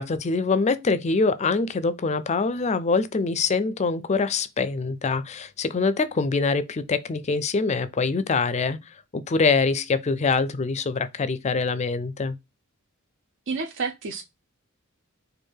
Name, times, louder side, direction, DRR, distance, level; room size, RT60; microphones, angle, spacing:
voice 1, 0.0-8.8 9.1-12.3, left 4 dB, 30° left, 0.4 m, -24 dB
voice 2, 13.5-14.2, right 4 dB, 60° right, 0.5 m, -29 dB
4.6 x 2.5 x 4.5 m
head